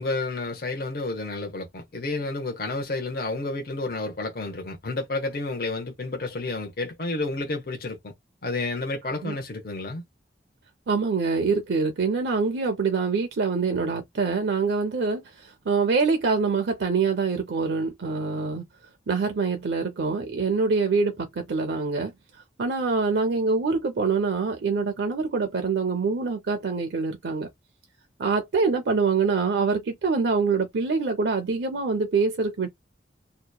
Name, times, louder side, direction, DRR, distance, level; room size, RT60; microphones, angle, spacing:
voice 1, 0.0-8.1 8.4-10.0, left 2 dB, 55° left, 0.7 m, -30 dB
voice 2, 10.9-18.6 19.1-22.1 22.6-27.5 28.2-32.7, right 4 dB, 75° right, 0.5 m, -25 dB
2.8 x 2.1 x 2.2 m
head